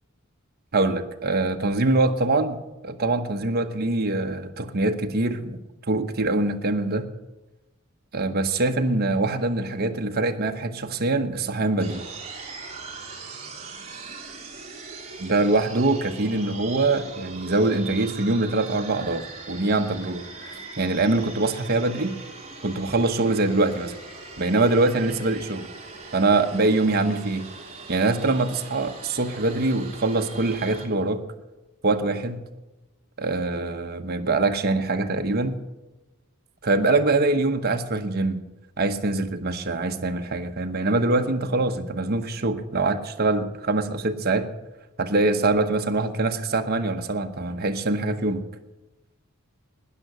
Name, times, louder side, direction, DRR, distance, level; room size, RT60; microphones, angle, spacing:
voice 1, 0.7-2.6 2.8-5.6 5.9-7.1 8.1-12.0 15.2-22.1 22.6-23.9 24.4-25.7 26.1-27.4 27.9-31.2 31.8-32.4 33.2-35.6 36.6-38.4 38.8-44.5 45.0-48.4, right 2 dB, 45° right, 6 dB, 1.0 m, -24 dB
sound 1, 11.8-30.9, right 4 dB, 30° right, 2.4 m, -41 dB
12.5 x 10.0 x 6.8 m, 1.0 s
head